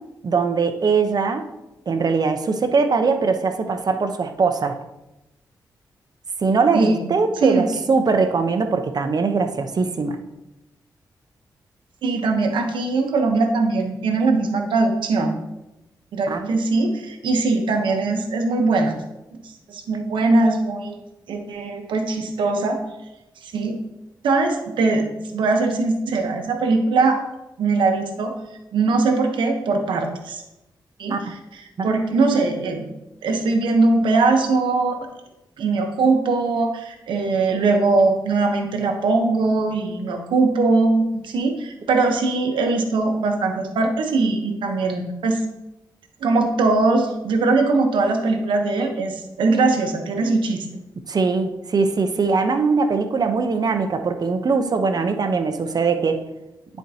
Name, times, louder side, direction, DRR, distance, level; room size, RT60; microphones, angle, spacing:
voice 1, 0.2-1.5 1.9-4.8 6.4-10.2 16.3-16.5 31.1-31.2 31.8-31.9 51.1-56.2, right 4 dB, 55° right, 7 dB, 0.8 m, -21 dB
voice 2, 6.7-7.1 7.4-7.7 12.0-15.4 16.1-18.9 19.3-21.0 21.3-22.8 23.4-23.8 24.2-27.2 27.6-28.3 28.7-30.4 31.0-32.9 33.2-35.0 35.6-45.4 46.2-50.7, right 3 dB, 85° right, 4 dB, 0.9 m, -21 dB
10.0 x 4.5 x 2.8 m, 0.94 s
cardioid pair, 55°, 8 cm